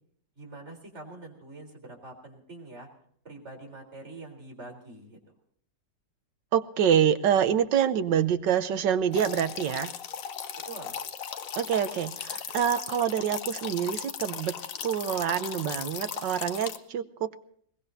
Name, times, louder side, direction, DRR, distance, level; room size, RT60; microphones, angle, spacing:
voice 1, 0.4-2.9 3.2-5.2 10.6-10.9, right 2 dB, 35° right, 1 dB, 4.3 m, -45 dB
voice 2, 6.5-9.9 11.6-14.5 14.8-17.3, right 9 dB, 75° right, 12 dB, 1.5 m, -26 dB
sound 1, 9.1-16.8, left 8 dB, 55° left, 1.1 m, -37 dB
22.0 x 20.0 x 2.8 m, 0.64 s
omnidirectional pair, 2.0 m